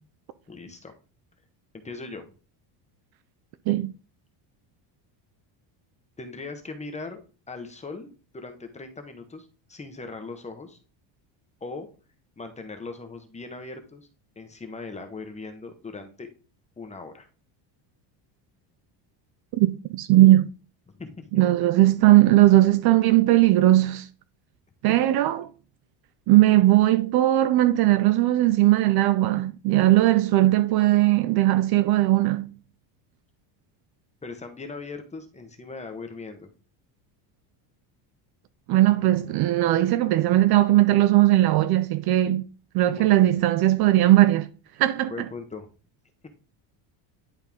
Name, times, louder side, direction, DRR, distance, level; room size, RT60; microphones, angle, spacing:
voice 1, 0.5-0.9 1.7-2.2 6.2-7.2 7.5-10.8 11.6-11.9 12.4-14.1 14.4-16.3 16.8-17.3 20.9-21.3 24.9-25.0 34.2-36.5 42.9-43.3 45.1-45.7 46.2-46.3, left 3 dB, 15° left, 1.0 m, -39 dB
voice 2, 19.5-20.5 21.3-24.1 24.8-25.5 26.3-32.5 38.7-42.5 42.7-44.5 44.8-45.1, right 15 dB, 50° right, 0.5 m, -19 dB
10.5 x 4.3 x 3.6 m
cardioid pair, 140°, 50 cm